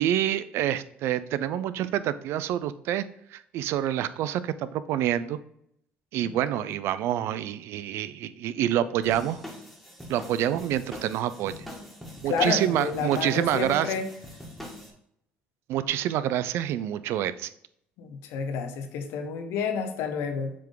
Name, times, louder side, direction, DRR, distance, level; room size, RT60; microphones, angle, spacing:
voice 1, 0.0-3.0 3.3-5.4 6.1-9.4 10.1-11.7 12.2-13.9 15.7-17.5, right 11 dB, 70° right, 14 dB, 0.4 m, -27 dB
voice 2, 6.2-6.7 12.3-14.1 18.0-20.5, left 6 dB, 80° left, 6 dB, 1.0 m, -30 dB
sound 1, 9.0-14.9, left 1 dB, ahead, 1.9 m, -43 dB
7.5 x 3.5 x 3.8 m, 0.74 s
supercardioid pair, 85°, 4 cm